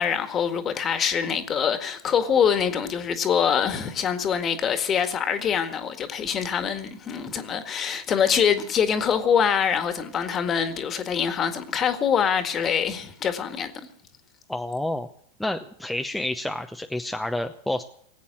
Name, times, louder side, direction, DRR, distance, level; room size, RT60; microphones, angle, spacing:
voice 1, 0.0-13.7, left 7 dB, 30° left, 1.8 m, -24 dB
voice 2, 14.5-15.1 15.4-17.8, left 1 dB, 5° left, 0.8 m, -29 dB
19.5 x 8.5 x 7.7 m
figure-of-eight pair, 95°, 0 cm